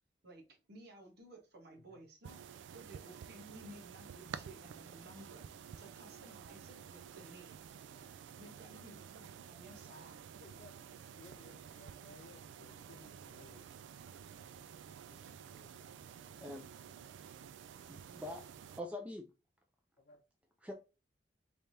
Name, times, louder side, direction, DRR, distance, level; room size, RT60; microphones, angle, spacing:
voice 1, 0.2-2.4 2.7-5.5 5.8-7.6 8.4-10.2, right 1 dB, 60° right, 1.1 m, -56 dB
sound 1, 2.2-18.8, right 8 dB, 80° right, 0.3 m, -51 dB
voice 2, 10.4-10.8 11.1-13.7 15.1-16.0 20.0-20.2, left 2 dB, 50° left, 0.6 m, -60 dB
voice 3, 16.4-16.7 17.9-18.4 18.8-19.3 20.6-20.7, left 1 dB, 10° right, 0.5 m, -44 dB
3.4 x 3.3 x 2.7 m
head